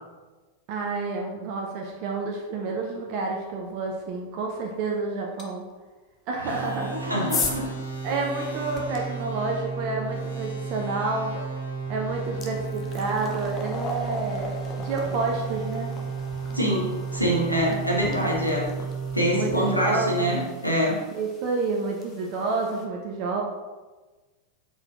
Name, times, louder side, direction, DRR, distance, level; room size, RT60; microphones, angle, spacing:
voice 1, 0.7-5.6 6.3-7.1 8.0-11.4 11.9-15.9 19.3-20.3 21.1-23.4, right 3 dB, 45° right, 0 dB, 0.5 m, -29 dB
sound 1, 5.4-5.5 6.6-9.0 11.3-11.4 11.9-22.8, left 4 dB, 30° left, 0.6 m, -38 dB
sound 2, 6.4-21.0, right 5 dB, 80° left, 0.8 m, -33 dB
voice 2, 6.9-7.6 16.5-18.7 19.1-21.0, equal, 90° right, -3 dB, 0.9 m, -25 dB
4.3 x 4.1 x 2.4 m, 1.3 s
figure-of-eight pair, 90°, 0 cm